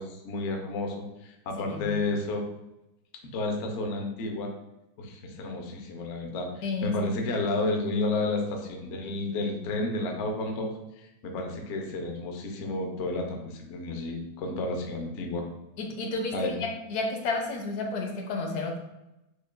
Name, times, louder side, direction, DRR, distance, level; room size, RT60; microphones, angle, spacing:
voice 1, 0.0-2.4 3.2-4.5 5.0-15.5 16.3-16.6, left 2 dB, 80° left, 2 dB, 0.6 m, -31 dB
voice 2, 6.6-6.9 15.8-18.8, left 3 dB, 65° left, 1 dB, 1.0 m, -31 dB
6.5 x 2.4 x 2.2 m, 0.92 s
omnidirectional pair, 2.1 m